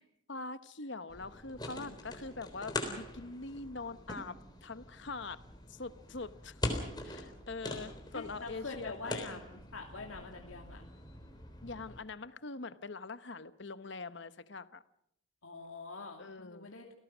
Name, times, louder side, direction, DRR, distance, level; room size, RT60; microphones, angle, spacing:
voice 1, 0.3-5.4 5.7-6.6 7.0-9.4 11.6-14.8 16.2-16.7, left 3 dB, 55° left, 13 dB, 1.0 m, -43 dB
sound 1, 1.1-12.0, left 1 dB, 20° left, 3.7 m, -43 dB
voice 2, 8.1-10.8 15.4-16.8, left 3 dB, 80° left, 2 dB, 2.6 m, -45 dB
28.5 x 18.0 x 6.2 m, 0.73 s
head